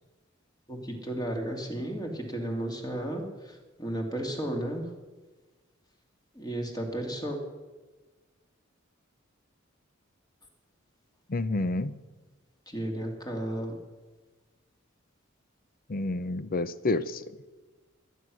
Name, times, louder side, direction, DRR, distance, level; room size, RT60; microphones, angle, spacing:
voice 1, 0.7-3.2 3.8-4.8 6.4-7.4 12.7-13.7, right 1 dB, 20° left, 2 dB, 2.5 m, -33 dB
voice 2, 11.3-12.0 15.9-17.3, left 2 dB, 45° left, 15 dB, 0.7 m, -29 dB
22.0 x 9.4 x 6.3 m, 1.3 s
head